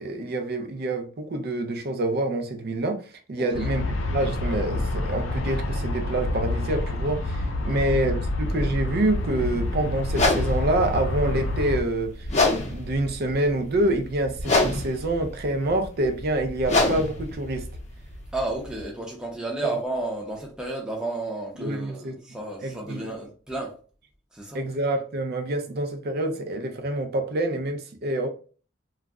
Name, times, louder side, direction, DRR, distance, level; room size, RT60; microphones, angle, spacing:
voice 1, 0.0-17.6 21.6-22.1 22.6-23.1 24.5-28.3, right 1 dB, 55° right, 0.5 m, -27 dB
voice 2, 3.4-3.7 7.6-7.9 18.3-23.8 24.3-24.7, right 2 dB, 5° right, 0.5 m, -32 dB
Aircraft, 3.5-11.8, left 2 dB, 90° left, 0.5 m, -28 dB
sound 1, 10.1-18.8, left 2 dB, 35° left, 0.7 m, -28 dB
2.3 x 2.0 x 3.5 m
head